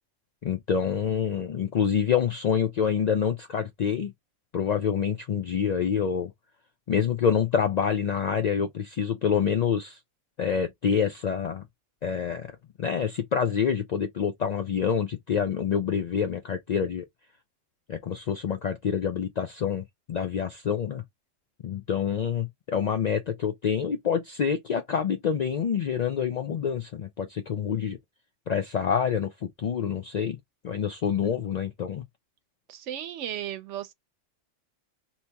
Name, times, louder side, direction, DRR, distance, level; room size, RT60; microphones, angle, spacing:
voice 1, 0.4-4.1 4.5-6.3 6.9-10.0 10.4-11.6 12.0-12.5 12.8-17.0 17.9-21.0 21.6-28.0 28.5-30.4 30.6-32.0, left 7 dB, 75° left, 0.3 m, -27 dB
voice 2, 32.7-33.9, right 11 dB, 75° right, 0.9 m, -35 dB
2.8 x 2.8 x 3.4 m
omnidirectional pair, 1.3 m